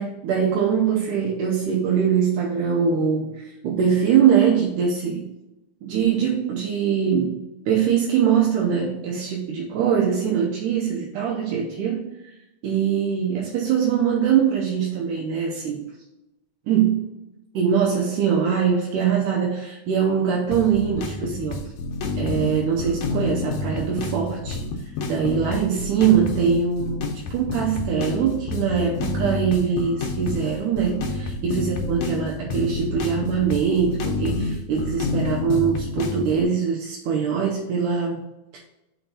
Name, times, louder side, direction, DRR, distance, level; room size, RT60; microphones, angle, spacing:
voice 1, 0.0-5.3 5.8-12.1 12.6-15.9 16.7-17.0 17.5-21.7 22.2-24.7 25.1-38.6, right 7 dB, 85° right, -3 dB, 2.3 m, -22 dB
sound 1, 20.5-36.4, left 3 dB, 70° left, 2.0 m, -29 dB
5.7 x 3.5 x 5.5 m, 0.94 s
omnidirectional pair, 3.6 m